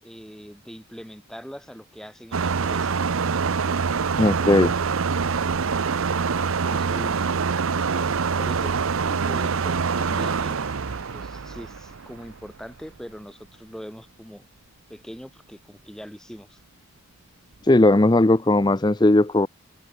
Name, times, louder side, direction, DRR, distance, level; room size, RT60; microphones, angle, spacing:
voice 1, 0.0-2.9 6.7-7.3 7.7-8.8 9.0-10.7 11.1-14.5 14.9-16.6, equal, ahead, 5.5 m, -42 dB
sound 1, 2.3-12.5, right 5 dB, 70° right, 0.7 m, -25 dB
voice 2, 4.2-4.7 17.6-19.5, left 2 dB, 20° left, 0.6 m, -17 dB
sound 2, 9.1-14.2, left 4 dB, 45° left, 6.4 m, -52 dB
open air
head